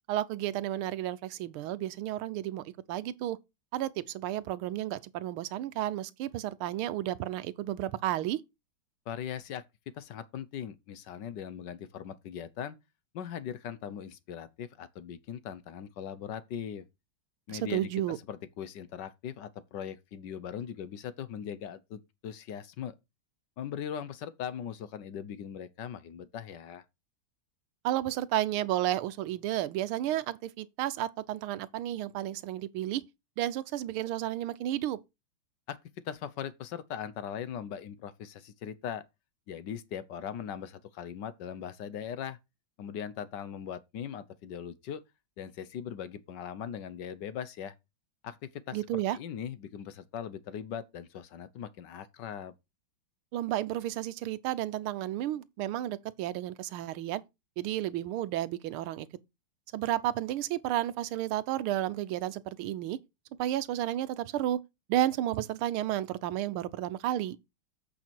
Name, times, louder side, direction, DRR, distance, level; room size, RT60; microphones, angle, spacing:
voice 1, 0.1-3.4 3.7-8.4 17.5-18.2 27.8-33.0 33.4-35.0 48.7-49.2 53.3-57.2 57.6-59.1 59.7-63.0 63.4-64.6 64.9-67.4, right 13 dB, 80° right, 1.6 m, -32 dB
voice 2, 9.1-12.8 13.1-16.9 17.5-22.9 23.6-26.8 35.7-35.8 36.0-39.0 39.5-42.4 42.8-45.0 45.4-47.7 48.2-52.5, left 8 dB, 65° left, 1.3 m, -40 dB
8.4 x 5.8 x 4.5 m
omnidirectional pair, 2.3 m